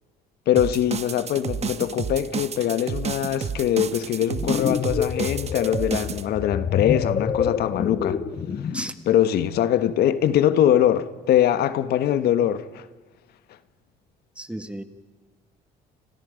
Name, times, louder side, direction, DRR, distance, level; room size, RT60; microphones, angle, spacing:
voice 1, 0.5-8.2 9.1-12.8, left 11 dB, 70° left, 1.4 m, -22 dB
sound 1, 0.6-6.2, right 7 dB, 40° right, 1.2 m, -31 dB
sound 2, 4.3-9.0, left 7 dB, 40° left, 1.2 m, -27 dB
voice 2, 14.4-14.8, right 1 dB, 5° right, 1.6 m, -33 dB
30.0 x 26.0 x 5.2 m
cardioid pair, 110°, 17 cm